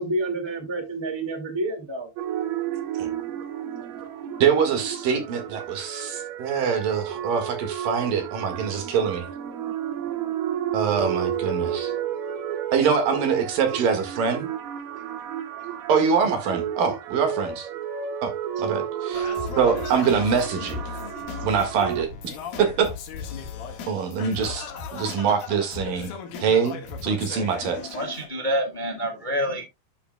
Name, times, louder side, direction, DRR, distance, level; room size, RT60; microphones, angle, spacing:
voice 1, 0.0-2.1 5.7-6.1 13.8-13.9 16.4-16.5 19.2-19.3, right 2 dB, 15° right, 1.1 m, -30 dB
sound 1, 2.2-22.0, right 9 dB, 85° right, 3.3 m, -32 dB
voice 2, 4.4-9.3 10.7-11.9 12.7-14.5 15.9-17.7 18.2-18.3 18.6-19.3 19.6-20.8 21.4-22.1 22.6-22.9 23.9-26.1 26.4-28.0, right 6 dB, 65° right, 3.4 m, -24 dB
Singing, 19.1-28.3, left 6 dB, 70° left, 3.3 m, -36 dB
voice 3, 27.9-29.6, equal, 20° left, 1.2 m, -27 dB
12.5 x 6.9 x 2.2 m
omnidirectional pair, 4.4 m